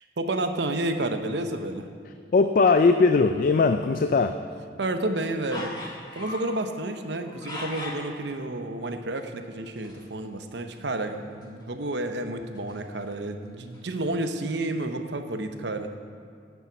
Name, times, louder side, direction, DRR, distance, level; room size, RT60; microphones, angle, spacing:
voice 1, 0.0-1.9 4.8-5.8 6.1-15.9, right 2 dB, 70° right, 7 dB, 0.8 m, -30 dB
voice 2, 2.3-4.4, left 4 dB, 50° left, 8 dB, 0.3 m, -20 dB
sound 1, 5.5-6.6 7.1-8.1 9.8-10.1 10.4-10.5 10.7-10.9 11.4-11.6 12.3-13.3 13.7-13.8, left 1 dB, 25° left, 1.5 m, -38 dB
9.9 x 7.1 x 8.1 m, 2.2 s
head